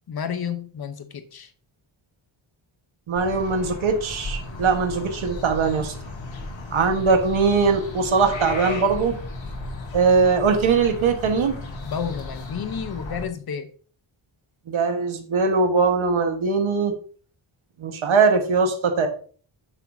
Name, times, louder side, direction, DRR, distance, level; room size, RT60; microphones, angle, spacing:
voice 1, 0.1-1.5 11.8-13.7, left 7 dB, 50° left, 10 dB, 0.9 m, -31 dB
voice 2, 3.1-5.9 6.7-9.2 9.9-11.5 14.7-16.9 17.8-19.1, right 4 dB, 75° right, 5 dB, 1.5 m, -21 dB
sound 1, 3.2-13.2, left 2 dB, 65° left, 1.9 m, -35 dB
10.0 x 6.6 x 2.8 m, 0.43 s
wide cardioid pair, 175°, 48 cm